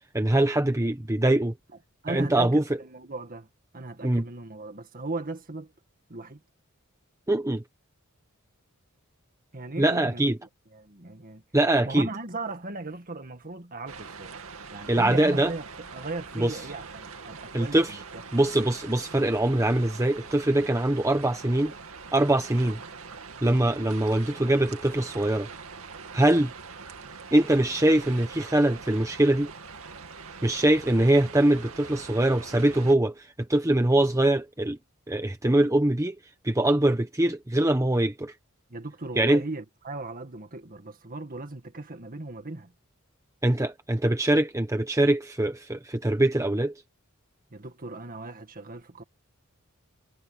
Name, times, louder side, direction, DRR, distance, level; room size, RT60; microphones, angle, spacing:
voice 1, 0.1-1.5 2.1-2.6 4.0-4.2 7.3-7.6 9.8-10.4 11.5-12.1 14.9-15.5 16.4-16.6 17.5-18.0 18.3-21.7 22.1-22.8 23.4-25.5 26.1-26.5 27.3-29.5 30.4-34.8 35.1-36.2 36.4-38.3 39.2-39.4 43.4-46.7, right 1 dB, 15° right, 1.0 m, -23 dB
voice 2, 2.0-3.5 3.7-5.7 6.1-6.4 9.5-10.3 10.7-11.4 11.9-14.3 14.7-18.2 24.0-24.1 38.7-42.7 47.5-49.0, right 2 dB, 40° right, 1.9 m, -37 dB
sound 1, 13.9-33.0, right 5 dB, 75° right, 2.4 m, -43 dB
head